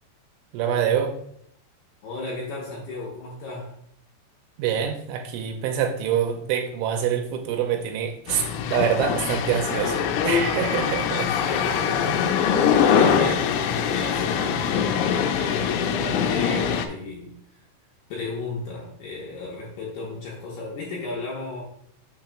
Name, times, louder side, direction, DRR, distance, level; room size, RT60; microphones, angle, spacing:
voice 1, 0.5-1.1 4.6-11.3, right 8 dB, 80° right, 4 dB, 3.0 m, -25 dB
voice 2, 2.0-3.8 11.1-17.3 18.1-21.6, left 3 dB, 70° left, -4 dB, 2.5 m, -34 dB
sound 1, 8.3-16.9, left 7 dB, 90° left, 3.3 m, -23 dB
7.3 x 3.0 x 5.7 m, 0.69 s
omnidirectional pair, 5.9 m